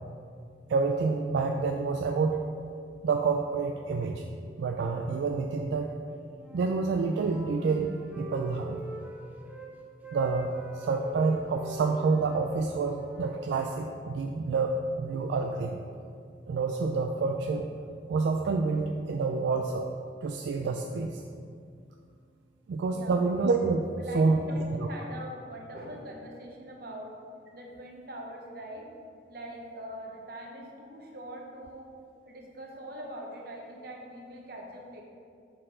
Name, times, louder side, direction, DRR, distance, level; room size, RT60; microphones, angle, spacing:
voice 1, 0.7-2.4 3.0-4.3 4.6-5.9 6.5-8.8 10.1-15.8 16.5-17.7 18.1-19.9 20.2-21.2 22.7-24.5 24.8-24.9, right 4 dB, 80° right, 3 dB, 0.3 m, -28 dB
Wind instrument woodwind instrument, 6.3-9.7 10.0-13.9, right 1 dB, 10° right, 0.6 m, -45 dB
voice 2, 22.9-23.2 24.0-27.1 27.5-28.9 29.3-31.9 32.2-35.0, right 1 dB, 55° right, -1 dB, 0.9 m, -42 dB
6.5 x 4.2 x 3.7 m, 2.3 s
head